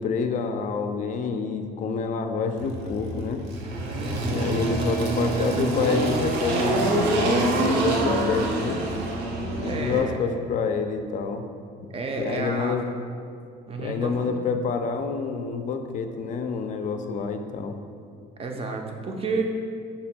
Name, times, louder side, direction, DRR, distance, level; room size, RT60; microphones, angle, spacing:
voice 1, 0.0-3.4 4.3-8.8 9.6-11.4 12.2-12.9 13.8-17.8, left 5 dB, 50° left, 7 dB, 0.4 m, -27 dB
Engine, 2.6-10.0, right 2 dB, 85° right, 0.6 m, -26 dB
voice 2, 3.9-4.5 5.4-6.1 9.6-10.2 11.9-12.8 13.7-14.4 18.4-19.5, right 3 dB, 35° right, 3 dB, 0.5 m, -31 dB
5.4 x 2.2 x 4.3 m, 2.3 s
cardioid pair, 110°, 17 cm